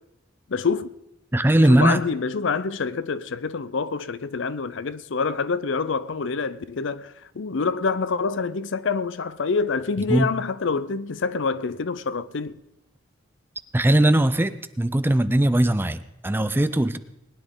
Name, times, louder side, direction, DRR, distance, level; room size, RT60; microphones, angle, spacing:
voice 1, 0.5-0.9 1.7-12.5, left 4 dB, 65° left, 0.6 m, -26 dB
voice 2, 1.3-2.0 10.1-10.3 13.7-17.0, right 1 dB, 10° right, 0.4 m, -19 dB
20.5 x 10.0 x 3.8 m
head